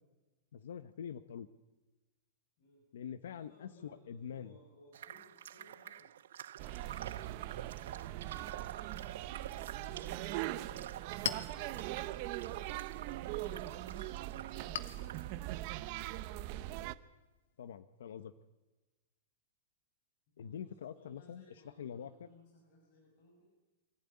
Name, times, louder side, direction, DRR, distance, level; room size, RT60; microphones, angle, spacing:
voice 1, 0.5-1.5 2.9-4.6 17.6-18.3 20.4-22.3, left 8 dB, 90° left, 12 dB, 1.0 m, -45 dB
voice 2, 3.5-6.1 6.6-8.3 9.0-12.7 13.0-15.6 20.4-20.7 20.9-23.5, left 1 dB, 35° left, -2 dB, 6.4 m, -62 dB
sound 1, 4.9-15.3, right 10 dB, 75° right, 0.7 m, -49 dB
sound 2, 6.6-17.0, right 15 dB, 35° right, 0.7 m, -41 dB
Chink clink, 10.7-17.8, left 9 dB, 70° left, 1.9 m, -47 dB
24.0 x 16.0 x 9.8 m, 1.1 s
supercardioid pair, 175°, 0 cm